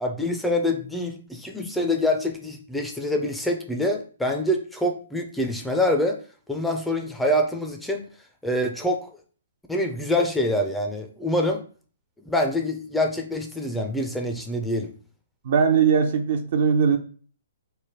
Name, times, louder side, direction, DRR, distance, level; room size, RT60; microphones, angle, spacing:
voice 1, 0.0-6.2 6.5-8.1 8.4-9.1 9.7-11.6 12.2-14.9, left 1 dB, 5° left, 0.4 m, -25 dB
voice 2, 15.4-17.0, right 6 dB, 55° right, 0.6 m, -20 dB
3.3 x 2.2 x 4.2 m
hypercardioid pair, 135°, 0 cm